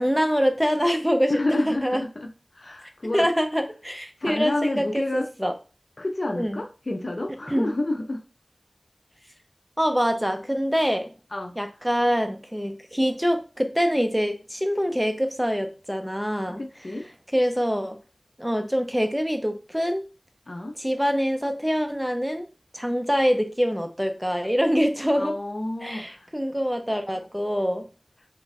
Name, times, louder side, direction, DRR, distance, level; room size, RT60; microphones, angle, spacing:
voice 1, 0.0-1.4 1.7-2.0 3.1-5.5 6.4-6.6 7.5-7.7 9.8-11.1 11.6-16.6 17.3-18.0 18.4-20.0 20.8-22.5 22.7-25.3 25.8-27.9, equal, 5° right, 5 dB, 0.7 m, -24 dB
voice 2, 1.3-3.3 4.2-5.3 6.0-8.2 11.3-11.6 16.5-17.1 20.5-20.8 25.2-26.3, left 2 dB, 65° left, 5 dB, 0.5 m, -29 dB
3.5 x 2.3 x 4.1 m, 0.32 s
wide cardioid pair, 50°, 0 cm